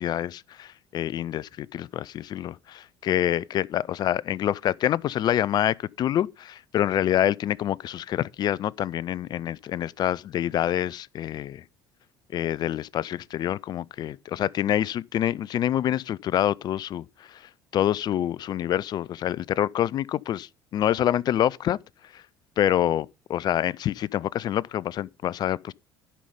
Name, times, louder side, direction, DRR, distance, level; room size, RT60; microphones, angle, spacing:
voice 1, 0.0-11.6 12.3-21.8 22.1-22.2 22.6-25.7, left 11 dB, 45° left, 0.4 m, -26 dB
11.5 x 5.5 x 5.1 m
figure-of-eight pair, 60°, 10 cm